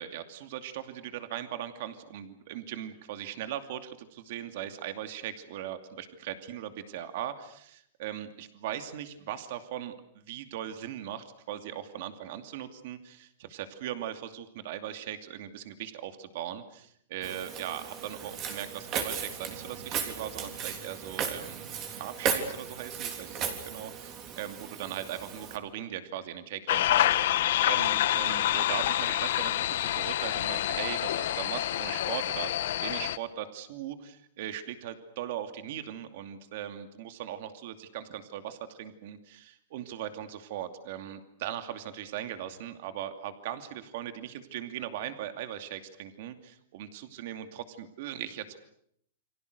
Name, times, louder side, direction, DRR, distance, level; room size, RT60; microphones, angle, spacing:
voice 1, 0.0-48.6, right 11 dB, 50° right, 8 dB, 2.6 m, -39 dB
Walk footsteps, 17.2-25.6, right 7 dB, 25° right, 3.6 m, -36 dB
sound 1, 26.7-33.2, left 13 dB, 60° left, 1.2 m, -27 dB
29.5 x 24.5 x 6.7 m, 0.69 s
supercardioid pair, 165°, 0 cm